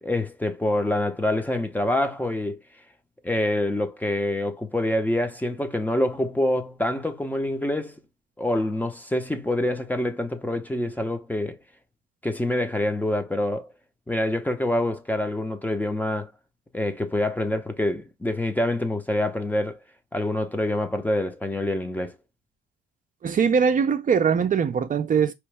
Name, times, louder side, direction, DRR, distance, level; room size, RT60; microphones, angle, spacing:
voice 1, 0.0-2.6 3.2-7.9 8.4-11.6 12.2-13.7 14.1-16.3 16.7-19.8 20.1-22.1, left 1 dB, 10° left, 0.8 m, -26 dB
voice 2, 23.2-25.3, right 6 dB, 40° right, 0.6 m, -21 dB
4.6 x 3.1 x 3.3 m
cardioid pair, 90°, 20 cm